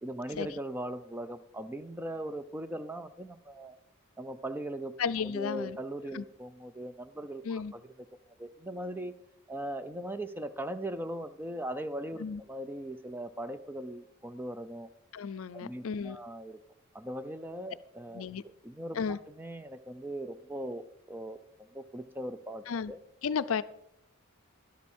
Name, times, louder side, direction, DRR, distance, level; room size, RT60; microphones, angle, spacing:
voice 1, 0.0-3.8 4.2-7.9 8.4-9.1 9.5-14.9 15.5-16.6 16.9-18.3 18.6-23.0, right 1 dB, 10° right, 11 dB, 0.5 m, -39 dB
voice 2, 5.0-5.8 6.1-6.2 7.4-7.7 12.2-12.4 15.1-16.2 18.1-18.4 18.9-19.2 22.7-22.9 23.2-23.6, left 6 dB, 70° left, 14 dB, 0.5 m, -33 dB
12.0 x 11.5 x 4.4 m, 0.78 s
head